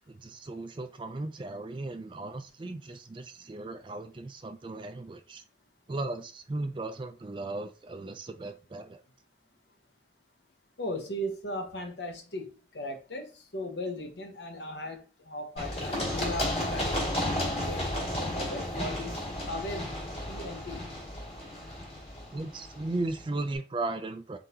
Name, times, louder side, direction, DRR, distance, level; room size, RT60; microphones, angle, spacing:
voice 1, 0.1-5.4 5.9-9.0 22.3-24.4, right 2 dB, 25° right, 0.3 m, -36 dB
voice 2, 10.8-17.1 17.6-19.2 19.5-19.9 20.3-20.8, left 1 dB, 65° left, 0.9 m, -37 dB
Run, 15.6-23.2, left 1 dB, 30° left, 2.0 m, -33 dB
3.8 x 3.7 x 2.8 m
head